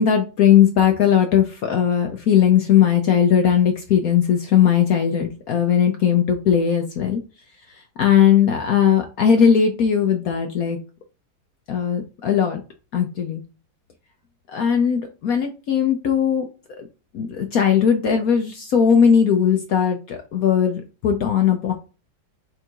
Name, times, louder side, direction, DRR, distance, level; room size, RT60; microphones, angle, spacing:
voice 1, 0.0-7.2 7.7-10.8 11.7-12.6 12.9-13.4 14.5-16.5 16.8-16.9 17.1-21.7, left 8 dB, 65° left, 4 dB, 1.0 m, -18 dB
4.6 x 2.5 x 4.4 m, 0.32 s
omnidirectional pair, 2.1 m